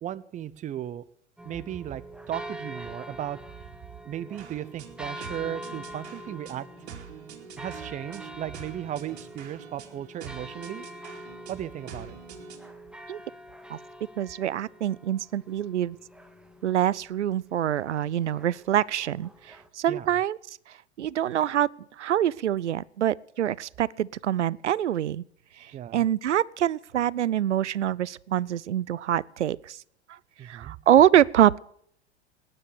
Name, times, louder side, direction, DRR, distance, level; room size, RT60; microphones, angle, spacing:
voice 1, 0.0-1.0 1.4-3.4 4.0-6.7 7.6-10.8 11.5-12.2 19.9-20.1 25.7-26.1 30.4-30.8, right 11 dB, 20° right, 0.7 m, -36 dB
sound 1, 1.4-19.7, equal, 5° right, 1.3 m, -45 dB
sound 2, 4.4-12.7, right 7 dB, 65° right, 2.5 m, -45 dB
voice 2, 14.2-16.0 16.6-20.4 21.0-21.7 22.0-25.2 25.6-29.8 30.1-31.6, right 11 dB, 80° right, 0.5 m, -25 dB
19.0 x 10.0 x 6.8 m
figure-of-eight pair, 95°, 34 cm